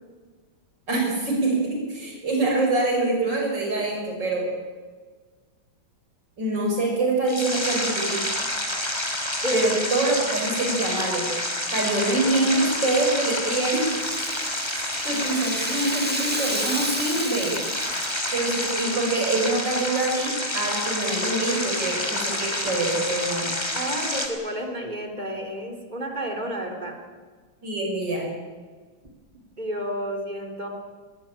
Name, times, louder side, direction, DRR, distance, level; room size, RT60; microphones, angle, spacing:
voice 1, 0.9-4.5 6.4-8.3 9.5-11.3 11.7-14.0 14.7-17.6 18.3-23.5 27.6-28.3, right 2 dB, 60° right, 0 dB, 7.0 m, -25 dB
sound 1, 7.3-24.3, left 1 dB, 15° left, 2.8 m, -28 dB
Rattle (instrument), 12.7-18.9, right 1 dB, 5° right, 1.6 m, -33 dB
voice 2, 23.7-27.0 29.6-30.7, equal, 20° right, 3 dB, 3.7 m, -30 dB
21.0 x 19.0 x 8.9 m, 1.5 s
omnidirectional pair, 2.2 m